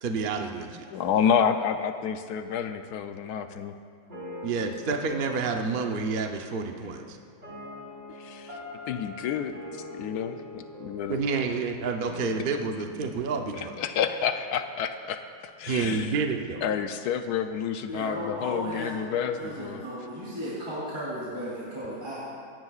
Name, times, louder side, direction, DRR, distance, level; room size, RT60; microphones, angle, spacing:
voice 1, 0.0-0.9 4.4-7.2 11.1-13.8 15.7-16.6, right 4 dB, 85° right, 4 dB, 0.4 m, -29 dB
voice 2, 0.9-3.7 8.2-8.6 8.9-9.6 9.9-11.2 13.5-15.2 15.6-16.1 16.6-19.8, left 7 dB, 75° left, 8 dB, 0.9 m, -29 dB
sound 1, 4.1-15.2, left 2 dB, 30° right, 4.4 m, -43 dB
voice 3, 17.9-19.0 19.3-22.3, equal, 15° right, -9 dB, 3.3 m, -35 dB
27.5 x 10.5 x 2.4 m, 2.2 s
omnidirectional pair, 2.2 m